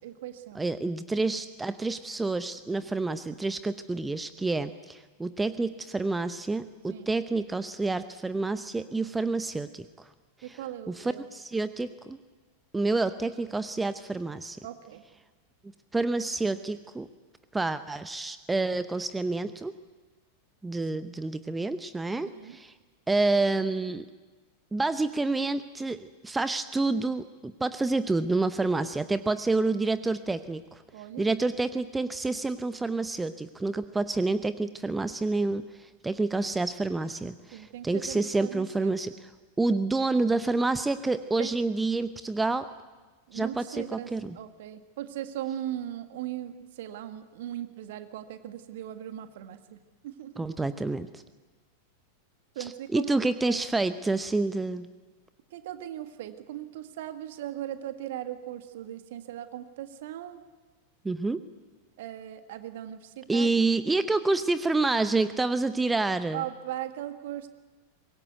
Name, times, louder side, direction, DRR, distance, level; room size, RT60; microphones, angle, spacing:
voice 1, 0.0-0.7 6.9-7.1 10.4-11.3 14.6-15.0 22.3-22.6 30.9-31.3 35.6-35.7 37.5-38.9 41.4-41.5 43.3-50.7 52.5-53.2 53.5-53.6 55.5-60.4 62.0-63.5 66.3-67.5, right 12 dB, 55° right, 9 dB, 1.7 m, -38 dB
voice 2, 0.5-10.1 10.5-10.6 10.9-12.2 12.7-14.6 15.9-17.1 17.5-19.7 20.6-22.7 23.1-24.1 24.7-30.8 31.2-39.3 39.6-42.7 43.3-44.4 50.4-51.2 52.6-54.9 61.0-61.4 63.3-66.4, right 3 dB, 10° right, 13 dB, 0.7 m, -28 dB
24.0 x 21.0 x 8.1 m, 1.3 s
figure-of-eight pair, 90°, 0 cm